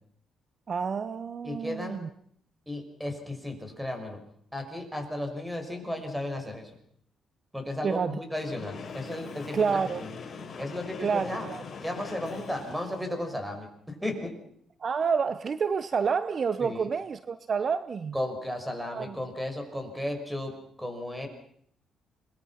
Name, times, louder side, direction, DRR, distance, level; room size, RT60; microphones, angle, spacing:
voice 1, 0.7-2.1 7.8-8.2 9.5-10.0 11.0-11.6 14.8-18.1 18.9-19.1, right 6 dB, 45° right, 14 dB, 0.9 m, -28 dB
voice 2, 1.4-2.0 2.7-4.2 4.5-6.7 7.5-10.2 10.6-11.5 11.8-14.3 16.6-16.9 18.1-21.3, left 1 dB, ahead, 5 dB, 6.1 m, -34 dB
Train, 8.3-13.3, left 5 dB, 45° left, 5.0 m, -42 dB
27.0 x 21.0 x 5.9 m, 0.66 s
cardioid pair, 90°, 0 cm